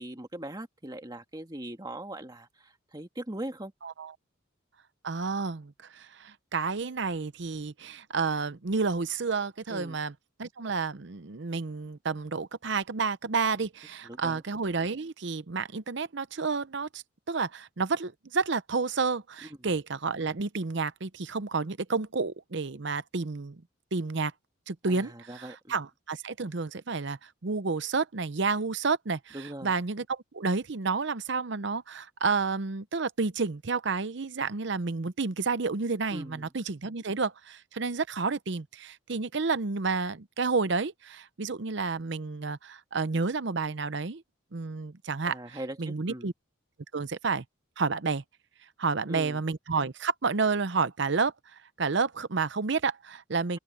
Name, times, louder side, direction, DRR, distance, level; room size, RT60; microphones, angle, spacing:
voice 1, 0.0-3.7 9.7-10.0 14.0-14.4 24.9-25.7 29.3-29.7 36.1-36.5 45.2-46.3 49.1-49.4, right 1 dB, 20° right, 1.6 m, -40 dB
voice 2, 5.0-10.1 10.4-23.6 23.9-24.3 24.7-29.4 29.6-44.2 44.5-46.3 46.9-47.4 47.8-48.2 48.8-51.3 51.8-53.6, right 4 dB, 55° right, 0.7 m, -30 dB
open air
head